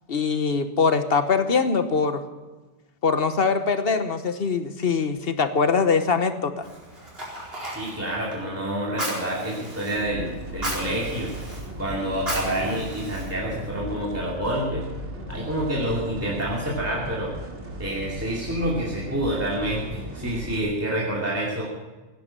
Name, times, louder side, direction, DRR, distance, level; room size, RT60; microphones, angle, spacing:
voice 1, 0.1-2.2 3.0-6.6, left 5 dB, 55° left, 10 dB, 1.3 m, -22 dB
Fire, 6.6-13.8, right 1 dB, 55° right, 4.7 m, -36 dB
voice 2, 7.7-11.3 11.8-14.8 15.3-17.3 17.8-21.7, right 1 dB, 10° right, -5 dB, 2.6 m, -28 dB
sound 1, 10.0-20.6, equal, 90° right, 2.5 m, -37 dB
17.0 x 10.5 x 7.5 m, 1.2 s
omnidirectional pair, 1.2 m